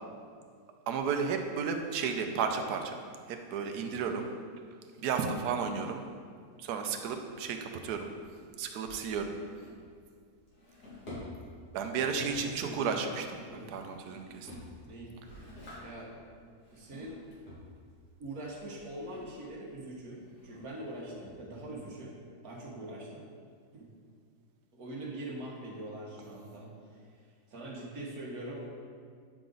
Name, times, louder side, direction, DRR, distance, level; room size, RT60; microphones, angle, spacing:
voice 1, 0.9-3.0 3.3-4.3 5.0-6.0 6.6-8.1 8.6-9.4 11.7-13.2 13.7-14.5, right 6 dB, 85° right, 5 dB, 1.2 m, -33 dB
Drawer open or close, 6.8-21.9, left 1 dB, 70° left, 2.6 m, -52 dB
voice 2, 12.1-13.0 13.5-13.7 14.8-15.1 15.8-16.1 16.7-17.2 18.2-22.2 22.4-23.3 23.7-23.9 24.7-28.7, right 1 dB, 70° right, -2 dB, 1.7 m, -43 dB
8.8 x 4.9 x 3.9 m, 2.1 s
omnidirectional pair, 1.7 m